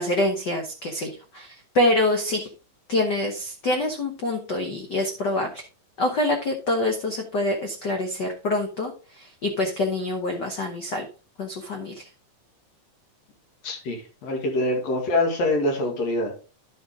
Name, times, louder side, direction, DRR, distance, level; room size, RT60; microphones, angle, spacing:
voice 1, 0.0-2.5 2.9-5.6 6.0-11.1 11.4-12.1, left 1 dB, 85° left, 3 dB, 0.9 m, -26 dB
voice 2, 13.6-16.3, left 2 dB, 60° left, 2 dB, 3.0 m, -25 dB
11.0 x 5.6 x 3.6 m, 0.35 s
omnidirectional pair, 3.5 m